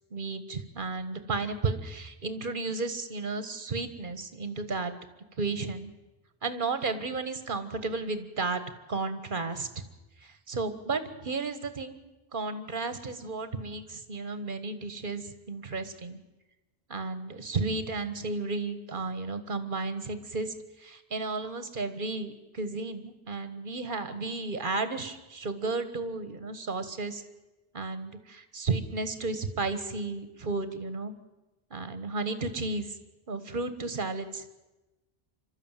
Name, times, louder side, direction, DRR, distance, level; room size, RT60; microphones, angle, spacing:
voice 1, 0.1-4.9 5.4-5.9 6.4-8.6 8.9-9.8 10.2-12.0 12.3-16.2 16.9-27.2 27.7-31.1 31.7-33.0 33.3-34.7, right 3 dB, 50° right, 11 dB, 1.6 m, -33 dB
26.5 x 12.5 x 9.1 m, 1.1 s
omnidirectional pair, 1.1 m